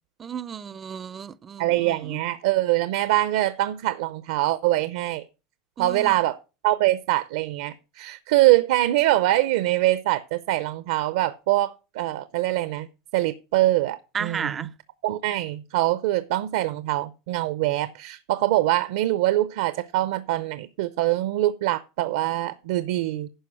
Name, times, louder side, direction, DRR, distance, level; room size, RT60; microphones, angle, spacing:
voice 1, 0.2-2.2 5.8-6.2 14.1-14.7, right 7 dB, 20° right, 0.4 m, -33 dB
voice 2, 1.6-5.2 5.8-6.4 6.6-12.9 13.1-14.5 15.0-23.3, right 16 dB, 65° right, 0.6 m, -23 dB
11.0 x 4.9 x 5.9 m
supercardioid pair, 170°, 0 cm